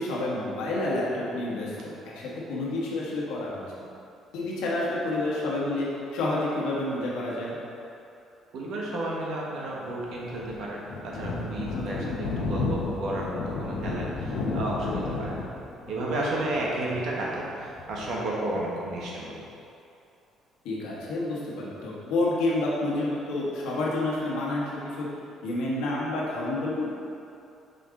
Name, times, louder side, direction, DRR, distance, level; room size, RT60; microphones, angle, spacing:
voice 1, 0.0-3.9 4.3-7.6 11.7-12.1 20.6-25.1 25.4-26.9, left 2 dB, 90° left, -5 dB, 1.4 m, -29 dB
voice 2, 8.5-15.4 15.9-19.4, right 1 dB, 70° right, -4 dB, 1.3 m, -32 dB
Thunder, 9.9-19.0, left 3 dB, 75° left, 0.7 m, -33 dB
5.4 x 5.2 x 3.7 m, 2.7 s
cardioid pair, 110°, 0 cm